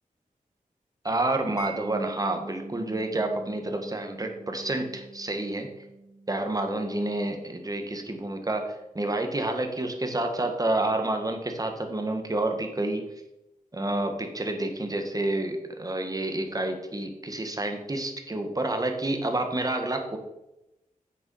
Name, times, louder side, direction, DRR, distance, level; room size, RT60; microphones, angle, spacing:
voice 1, 1.0-5.7 6.3-13.0 13.7-20.2, right 2 dB, 25° right, 5 dB, 1.5 m, -29 dB
Mallet percussion, 1.6-8.3, right 2 dB, 25° left, 2.6 m, -44 dB
8.3 x 6.7 x 5.5 m, 0.93 s
wide cardioid pair, 100°, 14 cm